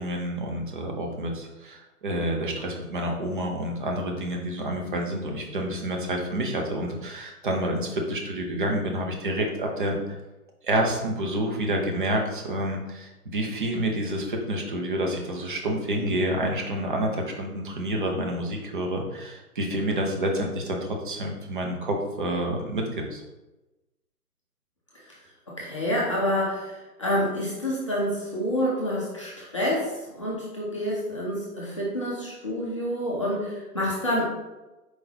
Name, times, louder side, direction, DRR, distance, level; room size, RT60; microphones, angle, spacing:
voice 1, 0.0-10.2 10.6-23.2, right 1 dB, 35° right, 1 dB, 0.7 m, -28 dB
voice 2, 25.6-34.2, equal, 20° left, -7 dB, 0.5 m, -28 dB
4.6 x 3.6 x 2.8 m, 1.1 s
figure-of-eight pair, 135°, 47 cm